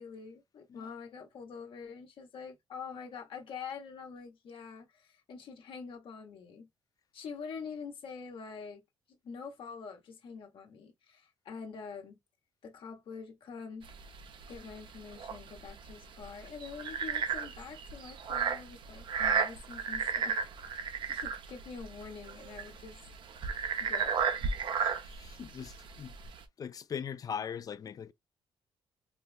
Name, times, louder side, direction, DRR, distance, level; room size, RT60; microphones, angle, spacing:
voice 1, 0.0-6.7 7.1-8.8 9.1-12.2 12.6-13.9 14.5-20.4 21.0-23.0 23.8-24.3, left 5 dB, 65° left, 1.0 m, -45 dB
sound 1, 13.8-26.4, right 6 dB, 60° right, 0.7 m, -34 dB
voice 2, 25.0-26.1 26.6-28.1, left 7 dB, 40° left, 0.4 m, -40 dB
4.3 x 2.4 x 2.4 m
cardioid pair, 105°, 9 cm